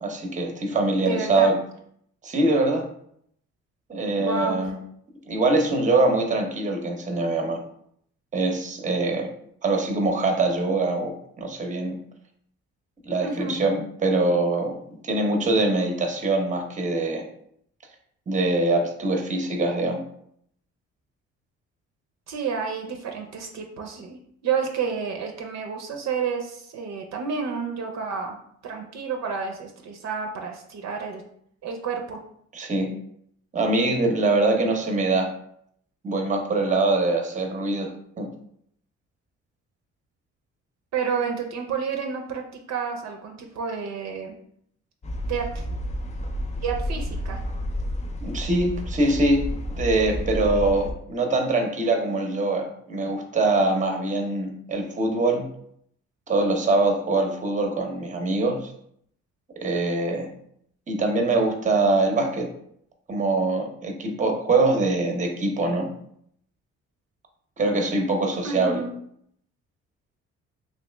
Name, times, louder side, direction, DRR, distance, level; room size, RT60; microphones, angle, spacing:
voice 1, 0.0-1.5 2.2-2.8 3.9-4.8 5.3-7.6 8.3-9.3 9.6-11.9 13.1-14.7 15.0-17.2 18.3-20.0 32.5-32.9 33.5-35.3 36.0-37.9 38.2-38.3 48.2-49.4 49.7-55.5 56.3-58.7 59.6-60.3 60.9-62.5 63.1-65.9 67.6-68.8, right 2 dB, 25° right, 3 dB, 0.7 m, -23 dB
voice 2, 1.0-1.5 4.2-4.6 13.2-13.6 22.3-28.4 28.6-31.2 31.6-32.2 40.9-44.3 45.3-45.6 46.6-47.4 68.4-68.9, right 6 dB, 65° right, 3 dB, 0.6 m, -30 dB
sound 1, 45.0-50.9, equal, 25° left, 0.4 m, -30 dB
3.0 x 2.8 x 3.3 m, 0.68 s
cardioid pair, 90°, 29 cm